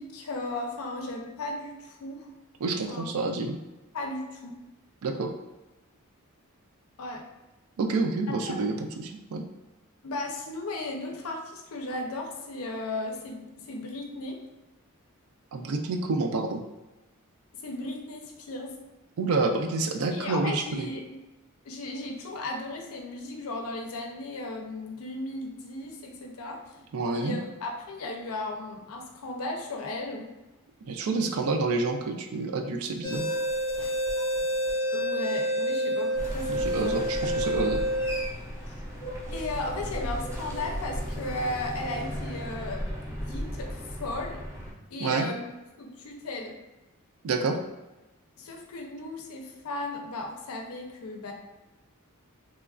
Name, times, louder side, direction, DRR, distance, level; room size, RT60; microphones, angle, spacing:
voice 1, 0.0-2.3 2.9-3.4 3.9-4.6 7.0-7.2 8.3-8.6 10.0-14.4 17.6-18.7 20.1-21.1 21.6-26.6 27.1-30.3 34.9-37.0 38.7-38.8 39.3-42.9 43.2-44.4 44.9-45.5 45.8-46.6 48.4-51.3, left 2 dB, 75° left, 2 dB, 0.5 m, -36 dB
voice 2, 2.6-3.6 5.0-5.3 7.8-9.4 15.5-16.6 19.2-20.9 26.9-27.4 30.9-33.3 36.5-37.8 45.0-45.3 47.2-47.6, right 3 dB, 70° right, 5 dB, 0.4 m, -28 dB
sound 1, 33.0-42.2 42.8-42.9 43.5-43.7, equal, 20° left, 0.7 m, -30 dB
sound 2, 36.1-44.7, equal, 15° right, 0.4 m, -36 dB
3.0 x 2.3 x 2.4 m, 1.1 s
head